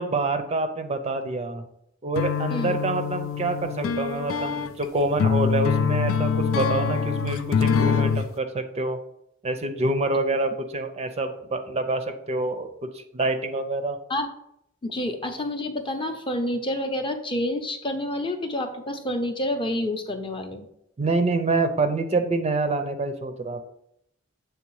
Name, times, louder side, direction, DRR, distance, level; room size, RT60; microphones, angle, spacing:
voice 1, 0.0-1.6 2.0-9.0 9.4-12.7 12.9-14.0 21.0-23.6, right 2 dB, 30° right, 8 dB, 0.5 m, -26 dB
sound 1, 2.2-8.3, left 6 dB, 75° left, 0.4 m, -24 dB
voice 2, 14.8-20.7, left 1 dB, 25° left, 5 dB, 0.6 m, -28 dB
7.2 x 3.3 x 4.7 m, 0.77 s
head